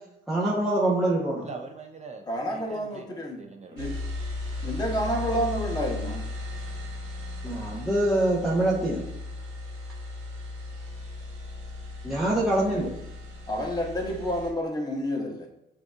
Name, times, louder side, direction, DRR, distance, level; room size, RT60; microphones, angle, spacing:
voice 1, 0.3-1.5 7.4-9.0 12.0-12.9, right 1 dB, ahead, -7 dB, 1.0 m, -24 dB
voice 2, 1.4-3.9, right 4 dB, 35° right, 4 dB, 0.5 m, -43 dB
voice 3, 2.3-3.4 3.7-4.0 4.6-6.2 13.5-15.5, equal, 20° left, -1 dB, 1.1 m, -29 dB
sound 1, 3.8-14.5, left 2 dB, 85° right, 1.0 m, -36 dB
7.5 x 2.8 x 2.5 m, 0.84 s
cardioid pair, 90°, 20 cm